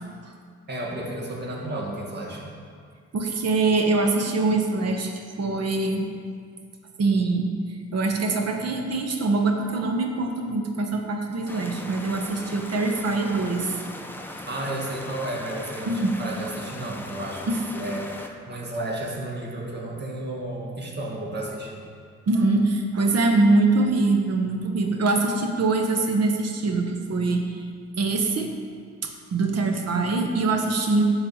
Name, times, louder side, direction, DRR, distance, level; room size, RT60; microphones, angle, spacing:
voice 1, 0.7-2.5 14.5-17.5 17.7-21.8, right 1 dB, 35° right, -2 dB, 2.0 m, -32 dB
voice 2, 3.1-5.1 5.4-6.1 7.0-7.5 7.9-13.7 15.9-16.1 17.5-17.6 22.3-27.6 28.0-28.5 29.3-31.0, right 3 dB, 55° right, 3 dB, 1.3 m, -23 dB
sound 1, 11.5-18.3, left 1 dB, 5° left, 0.8 m, -39 dB
10.0 x 4.7 x 7.2 m, 2.1 s
cardioid pair, 90°, 30 cm